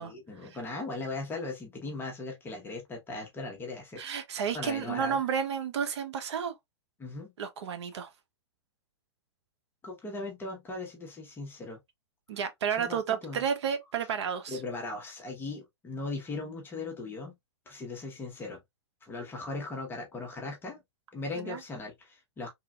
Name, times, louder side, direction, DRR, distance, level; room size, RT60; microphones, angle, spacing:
voice 1, 0.0-4.0 4.5-5.2 7.0-7.3 9.8-11.8 12.8-13.4 14.5-17.3 17.7-18.6 19.0-20.8 21.1-22.5, left 3 dB, 15° left, 0.8 m, -38 dB
voice 2, 4.0-6.5 7.4-8.1 12.3-14.6 21.4-21.6, right 7 dB, 70° right, 0.7 m, -31 dB
3.2 x 2.4 x 2.2 m
hypercardioid pair, 125°, 15 cm